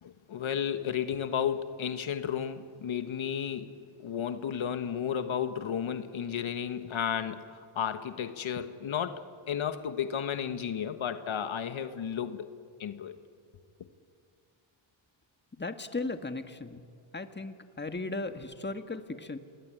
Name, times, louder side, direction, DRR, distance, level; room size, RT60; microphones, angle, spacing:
voice 1, 0.0-12.5 12.8-13.2, left 8 dB, 70° left, 1.4 m, -33 dB
voice 2, 15.6-16.8 17.1-19.4, left 3 dB, 20° left, 1.8 m, -36 dB
27.0 x 20.5 x 9.1 m
cardioid pair, 65°, 49 cm